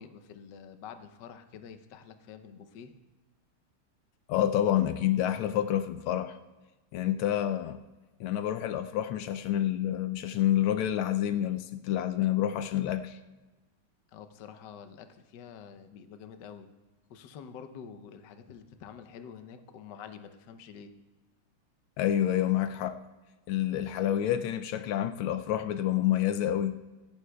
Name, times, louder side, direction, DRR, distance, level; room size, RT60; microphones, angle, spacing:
voice 1, 0.0-2.9 14.1-16.7 17.1-20.9, left 7 dB, 65° left, 1.3 m, -47 dB
voice 2, 4.3-6.4 6.9-7.8 8.2-13.2 22.0-23.0 23.5-26.8, left 11 dB, 85° left, 1.4 m, -28 dB
24.5 x 11.5 x 2.3 m
omnidirectional pair, 2.3 m